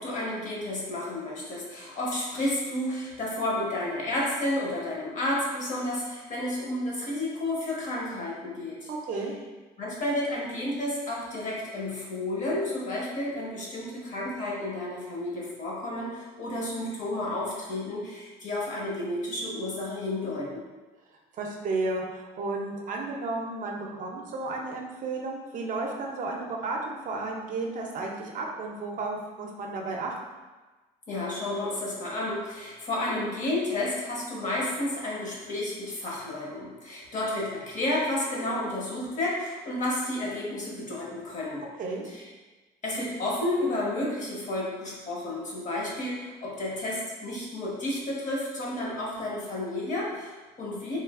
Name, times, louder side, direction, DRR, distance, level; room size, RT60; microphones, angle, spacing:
voice 1, 0.0-8.9 9.8-20.6 31.1-41.6 42.0-42.3 42.8-51.0, left 1 dB, 45° left, -4 dB, 0.9 m, -31 dB
voice 2, 8.9-9.3 21.3-30.1 41.8-42.0, right 3 dB, 50° right, 0 dB, 0.5 m, -33 dB
3.1 x 2.4 x 2.3 m, 1.2 s
cardioid pair, 110°, 17 cm